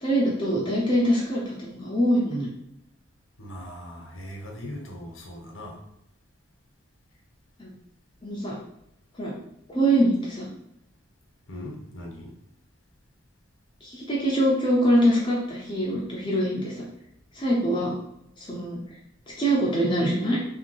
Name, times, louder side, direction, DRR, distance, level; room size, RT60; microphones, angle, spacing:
voice 1, 0.0-2.5 7.6-7.7 8.2-8.5 9.2-9.3 9.7-10.5 13.8-16.9 17.3-18.0 18.4-18.8 19.4-20.4, right 1 dB, 25° left, -4 dB, 0.8 m, -24 dB
voice 2, 3.4-5.8 11.5-12.3, left 1 dB, 70° left, 1 dB, 1.1 m, -39 dB
3.4 x 2.9 x 4.5 m, 0.82 s
head